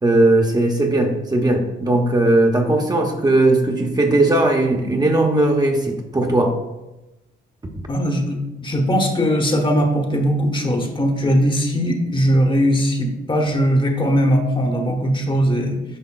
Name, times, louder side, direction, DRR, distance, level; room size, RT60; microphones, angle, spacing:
voice 1, 0.0-6.6, right 2 dB, 20° right, 1 dB, 0.9 m, -18 dB
voice 2, 7.9-15.8, equal, 25° left, 3 dB, 1.0 m, -19 dB
9.7 x 5.3 x 2.3 m, 0.98 s
cardioid pair, 90°, 20 cm